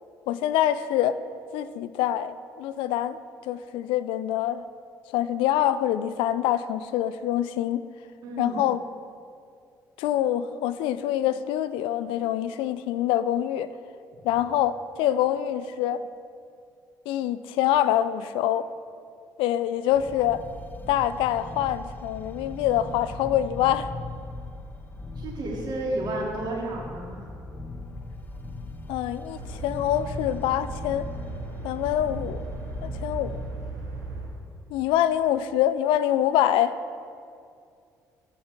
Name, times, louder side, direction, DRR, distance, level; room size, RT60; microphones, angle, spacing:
voice 1, 0.3-1.2 1.5-3.2 3.5-4.6 5.1-7.8 8.4-8.8 10.0-13.7 14.2-16.1 17.1-18.7 19.4-20.4 20.9-23.9 28.9-31.1 31.6-32.4 32.8-33.4 34.7-36.8, left 11 dB, 65° left, 13 dB, 0.4 m, -25 dB
voice 2, 8.2-8.6 25.2-27.2, right 2 dB, 50° right, -3 dB, 3.0 m, -31 dB
sound 1, 19.9-33.6, left 2 dB, 20° left, 1.1 m, -39 dB
sound 2, 29.3-34.3, right 3 dB, 90° right, 2.1 m, -37 dB
13.5 x 8.5 x 3.6 m, 2.4 s
hypercardioid pair, 50°, 9 cm